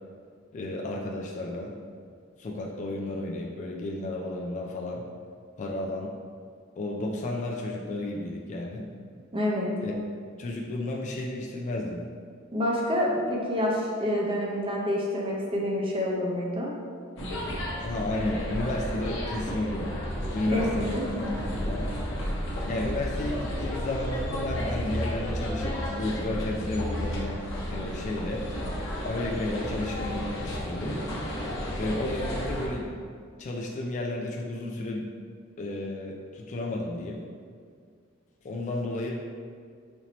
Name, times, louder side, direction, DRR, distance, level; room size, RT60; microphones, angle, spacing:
voice 1, 0.5-1.8 2.4-5.0 5.6-6.1 6.8-8.9 9.8-9.9 10.4-12.0 17.8-20.0 20.3-21.9 22.6-28.5 29.0-31.0 31.8-33.0 33.4-35.1 35.6-37.2 38.4-39.1, left 1 dB, 35° left, -1 dB, 0.3 m, -32 dB
voice 2, 9.3-9.7 12.5-16.7 20.5-20.6 20.9-21.0, left 1 dB, 25° right, -3 dB, 0.6 m, -27 dB
sound 1, 17.2-32.7, equal, 70° left, 0.8 m, -32 dB
4.3 x 2.7 x 2.9 m, 2.1 s
head